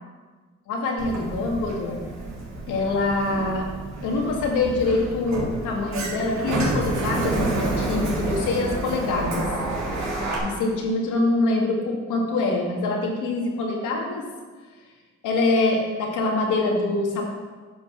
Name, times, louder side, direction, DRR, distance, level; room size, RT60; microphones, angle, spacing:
voice 1, 0.7-2.1 2.7-3.6 4.0-9.5 10.4-14.2 15.2-17.2, left 2 dB, 90° left, -1 dB, 2.1 m, -24 dB
Sliding door, 1.0-10.4, right 2 dB, 65° right, 2.8 m, -29 dB
9.3 x 5.5 x 6.4 m, 1.4 s
cardioid pair, 90°, 30 cm